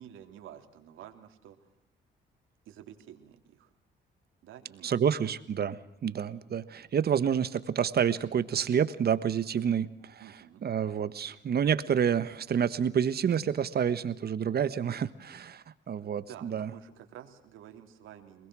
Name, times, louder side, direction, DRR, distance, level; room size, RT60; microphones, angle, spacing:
voice 1, 0.0-1.7 2.6-3.7 4.4-5.0 10.2-10.6 15.9-18.5, right 10 dB, 85° right, 4 dB, 3.3 m, -50 dB
voice 2, 4.8-10.2 10.6-16.7, right 8 dB, 50° right, 14 dB, 1.4 m, -28 dB
27.0 x 20.5 x 6.3 m, 0.78 s
cardioid pair, 90°, 20 cm